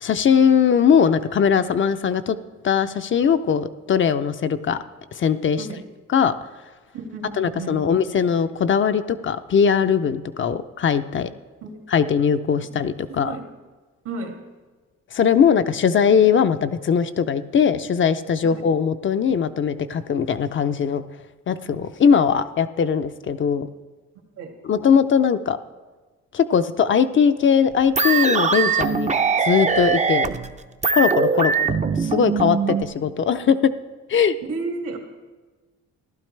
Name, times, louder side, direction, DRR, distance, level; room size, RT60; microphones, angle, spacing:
voice 1, 0.0-2.4 2.6-4.8 5.2-5.7 6.1-6.3 7.4-11.3 11.9-13.4 15.1-21.0 21.5-23.7 24.6-25.6 26.3-29.1 29.4-30.3 30.9-31.7 32.0-33.7 34.1-34.3, left 7 dB, 40° left, 10 dB, 0.5 m, -20 dB
voice 2, 6.9-7.8 11.6-11.7 13.1-13.4 14.0-14.4 18.4-18.5 24.4-24.5 31.3-31.4 34.5-35.0, right 3 dB, 75° right, 2 dB, 2.2 m, -32 dB
sound 1, 28.0-32.8, right 5 dB, 25° right, 0.5 m, -21 dB
15.5 x 11.5 x 3.3 m, 1.3 s
cardioid pair, 90°, 30 cm